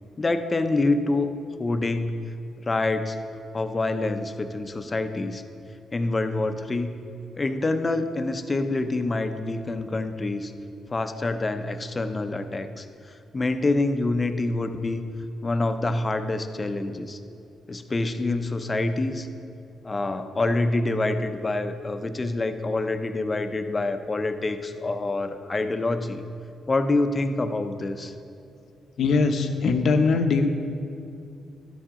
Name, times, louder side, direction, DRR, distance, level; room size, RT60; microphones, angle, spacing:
voice 1, 0.2-1.3 1.6-2.1 2.6-3.2 3.5-5.4 5.9-6.9 7.3-10.5 10.9-15.0 15.4-17.2 17.7-19.3 19.8-26.2 26.7-28.1, left 2 dB, 30° left, 8 dB, 0.7 m, -26 dB
voice 2, 29.0-30.5, left 4 dB, 70° left, 6 dB, 0.8 m, -21 dB
12.0 x 7.3 x 3.7 m, 2.5 s
supercardioid pair, 65°, 0 cm